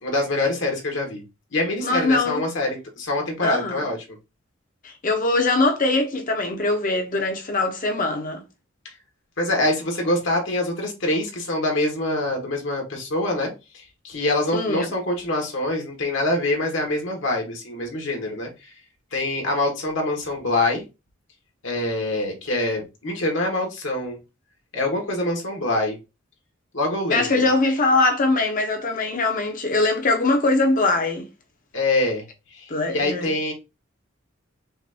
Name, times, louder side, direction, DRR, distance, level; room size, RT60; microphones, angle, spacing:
voice 1, 0.0-1.2 1.5-4.0 9.4-18.7 19.1-20.8 21.6-24.2 24.7-26.0 26.7-27.3 31.7-32.2 32.5-33.5, left 2 dB, 65° left, 1.5 m, -25 dB
voice 2, 1.8-2.4 3.4-3.8 4.8-8.4 14.5-14.9 27.1-31.3 32.7-33.3, left 2 dB, 40° left, 1.0 m, -22 dB
5.7 x 2.6 x 2.8 m
head